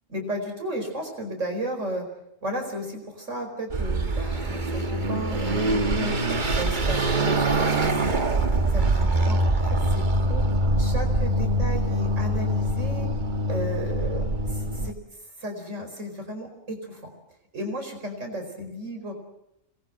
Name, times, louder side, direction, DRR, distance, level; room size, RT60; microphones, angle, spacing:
voice 1, 0.1-2.0 2.4-6.2 6.5-8.1 8.7-10.4 10.8-13.1 13.5-14.9 15.4-17.0 17.5-19.1, equal, 75° right, 4 dB, 5.1 m, -34 dB
Car passing by / Accelerating revving vroom, 3.7-14.9, right 1 dB, 40° right, 1.5 m, -24 dB
26.0 x 20.5 x 7.8 m, 0.83 s
omnidirectional pair, 1.3 m